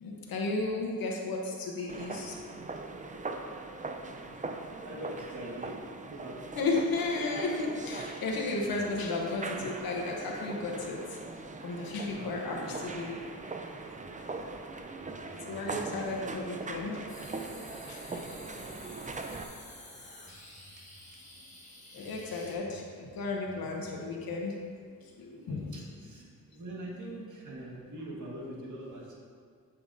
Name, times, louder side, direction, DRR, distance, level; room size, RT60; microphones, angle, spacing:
voice 1, 0.0-2.3 6.5-11.0 11.6-13.1 15.5-17.0 17.9-18.0 21.9-22.8 23.1-24.5 25.2-25.7, left 3 dB, 85° left, -1 dB, 1.0 m, -33 dB
sound 1, 1.9-19.4, right 3 dB, 20° right, 0.5 m, -41 dB
voice 2, 3.8-6.6 11.7-13.7 14.0-14.4 15.0-16.4 20.3-20.4 20.7-21.4 21.9-22.3 25.1-29.2, right 1 dB, 60° right, -3 dB, 1.7 m, -45 dB
sound 2, 17.1-22.5, left 1 dB, 20° left, 1.6 m, -50 dB
8.2 x 6.9 x 2.7 m, 2.2 s
cardioid pair, 75°, 35 cm